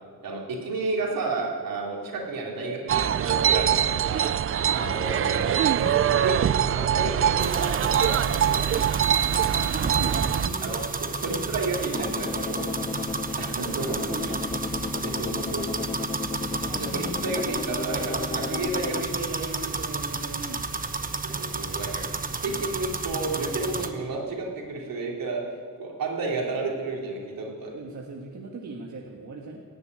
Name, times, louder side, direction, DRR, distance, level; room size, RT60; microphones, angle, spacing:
voice 1, 0.2-4.3 4.7-5.5 5.8-9.5 10.6-10.8 11.2-12.6 13.4-13.9 15.0-15.8 16.8-19.1 21.4-22.1 22.4-25.4 25.8-27.8, right 3 dB, 80° right, -1 dB, 3.3 m, -31 dB
sound 1, 2.9-10.5, right 9 dB, 40° right, 0.4 m, -23 dB
sound 2, 7.4-23.9, right 3 dB, 25° right, 0.9 m, -32 dB
voice 2, 9.5-10.8 13.8-14.9 15.2-15.4 18.9-21.2 27.1-27.2 27.7-29.6, right 3 dB, 55° right, 0 dB, 1.5 m, -39 dB
sound 3, 11.9-19.0, left 5 dB, 20° left, 0.4 m, -34 dB
16.5 x 7.0 x 9.5 m, 2.1 s
cardioid pair, 100°, 34 cm